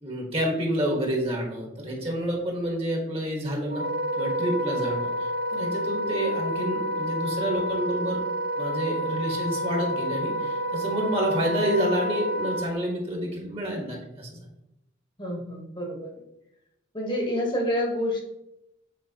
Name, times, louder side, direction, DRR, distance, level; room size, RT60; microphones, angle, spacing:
voice 1, 0.0-3.8 4.2-8.2 8.6-14.4, equal, 30° right, 0 dB, 1.5 m, -29 dB
Wind instrument woodwind instrument, 3.7-12.7, equal, 55° right, 0.6 m, -29 dB
voice 2, 15.2-16.1 16.9-18.2, equal, 25° left, 0 dB, 1.2 m, -28 dB
7.6 x 4.5 x 2.9 m, 0.84 s
head